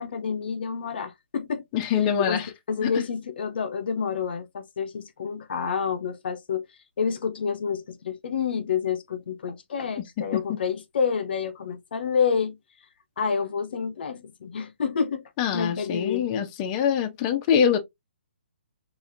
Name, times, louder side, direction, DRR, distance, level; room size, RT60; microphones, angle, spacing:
voice 1, 0.0-1.6 2.2-6.6 7.0-12.6 13.2-15.2 15.5-16.2, left 6 dB, 55° left, 0.8 m, -28 dB
voice 2, 1.7-2.5 2.8-3.0 10.3-10.6 15.4-17.8, left 8 dB, 25° left, 0.8 m, -24 dB
4.9 x 2.8 x 2.6 m
hypercardioid pair, 150°, 6 cm